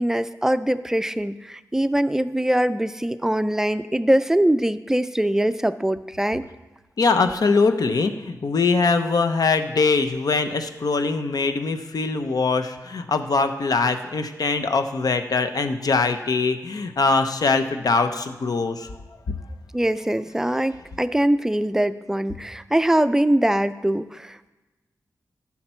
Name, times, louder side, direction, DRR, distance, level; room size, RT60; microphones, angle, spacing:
voice 1, 0.0-6.4 19.7-24.5, right 1 dB, 5° right, 12 dB, 0.4 m, -22 dB
voice 2, 7.0-18.9, left 4 dB, 65° left, 8 dB, 0.8 m, -22 dB
15.0 x 5.8 x 4.5 m, 1.1 s
wide cardioid pair, 85°, 7 cm